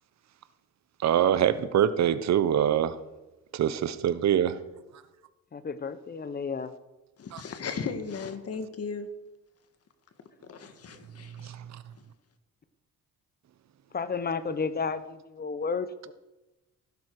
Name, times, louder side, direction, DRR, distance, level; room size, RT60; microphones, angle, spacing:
voice 1, 1.0-2.9 3.6-4.5, right 10 dB, 65° right, 1.0 m, -23 dB
voice 2, 5.5-6.7 13.9-16.1, left 5 dB, 30° left, 1.1 m, -32 dB
voice 3, 7.2-9.1 10.5-11.5, left 5 dB, 55° left, 1.8 m, -36 dB
16.0 x 12.0 x 4.9 m
cardioid pair, 90°, 30 cm